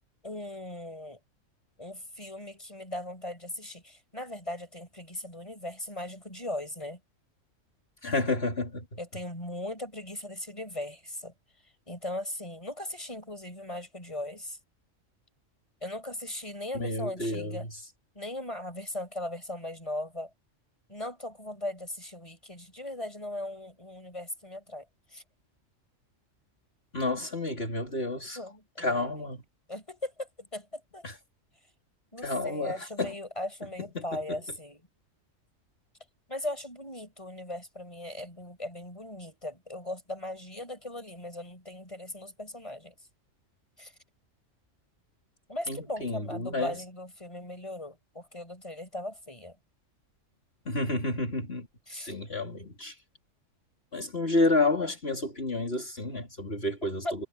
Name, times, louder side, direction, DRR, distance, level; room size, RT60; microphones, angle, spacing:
voice 1, 0.2-1.2 1.8-7.0 9.0-11.3 11.9-14.6 15.8-17.7 18.1-20.3 20.9-25.2 28.3-29.3 29.7-31.1 32.1-34.8 36.3-42.9 43.8-43.9 45.5-49.6 51.9-52.1 57.0-57.2, left 1 dB, 25° left, 6.5 m, -38 dB
voice 2, 8.0-8.9 16.7-17.7 26.9-28.4 28.8-29.4 31.0-31.1 32.2-33.1 34.0-34.4 45.7-46.8 50.7-51.7 51.9-52.9 53.9-57.2, left 2 dB, 50° left, 3.4 m, -30 dB
omnidirectional pair, 1.3 m